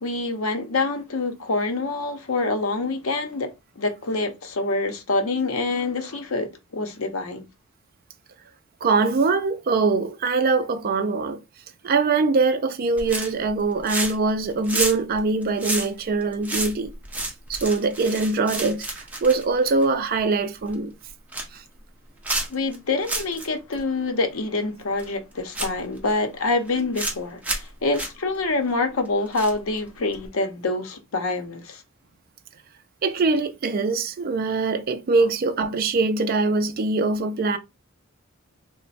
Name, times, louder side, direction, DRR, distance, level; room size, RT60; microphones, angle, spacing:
voice 1, 0.0-3.5 3.8-7.5 22.5-31.8, left 3 dB, 75° left, 0.7 m, -26 dB
voice 2, 8.8-11.4 11.8-16.9 17.2-20.9 21.5-21.6 33.0-37.6, right 3 dB, 45° right, 0.4 m, -23 dB
sound 1, 13.0-13.5 13.8-14.3 14.6-20.2 20.6-20.7 21.1-21.6 22.2-22.7 23.0-23.5 23.7-23.8 25.0-25.1 25.5-26.1 26.7-27.2 27.4-27.7 27.9-28.1 29.3-29.8 30.1-30.3, right 2 dB, 5° right, 0.7 m, -29 dB
3.0 x 2.1 x 4.1 m
head